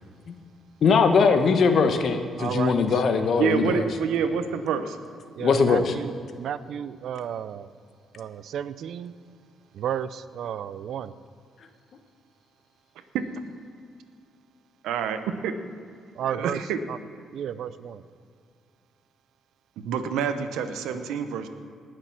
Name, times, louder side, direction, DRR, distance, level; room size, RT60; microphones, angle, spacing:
voice 1, 0.8-3.9 5.4-5.9, left 5 dB, 60° left, 7 dB, 1.2 m, -21 dB
voice 2, 2.4-3.0 3.7-3.8 5.4-7.7 8.1-9.1 9.7-11.1 16.2-16.6 16.9-17.0 17.3-18.0, right 9 dB, 70° right, 15 dB, 0.5 m, -33 dB
voice 3, 3.4-5.0 13.1-13.2 14.8-15.5 16.3-16.8 19.8-21.5, right 7 dB, 90° right, 9 dB, 0.9 m, -27 dB
19.0 x 6.7 x 5.9 m, 2.3 s
cardioid pair, 90°, 0 cm